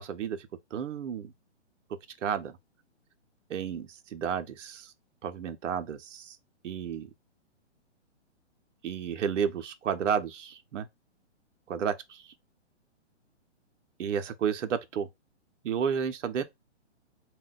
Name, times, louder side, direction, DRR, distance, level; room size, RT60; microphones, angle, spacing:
voice 1, 0.0-1.3 2.2-2.5 3.5-4.9 5.2-6.4 6.6-7.1 8.8-10.9 11.7-12.2 14.0-15.1 15.6-16.4, right 7 dB, 85° right, 0.6 m, -32 dB
2.2 x 2.1 x 3.8 m
hypercardioid pair, 155°, 36 cm